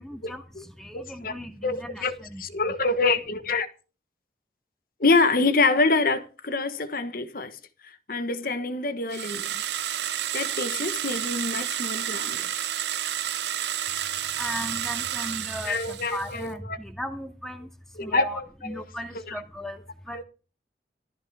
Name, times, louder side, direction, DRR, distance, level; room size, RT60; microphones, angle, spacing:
voice 1, 0.0-2.7 13.9-20.2, equal, ahead, 2.0 m, -37 dB
voice 2, 0.9-1.3 1.6-3.7 5.0-7.6 8.1-9.6 10.3-12.5 15.7-16.6 18.0-18.4 18.7-18.8 20.1-20.2, left 3 dB, 50° left, 1.3 m, -26 dB
sound 1, 9.1-16.4, right 11 dB, 75° right, 0.7 m, -30 dB
15.5 x 13.5 x 3.6 m
head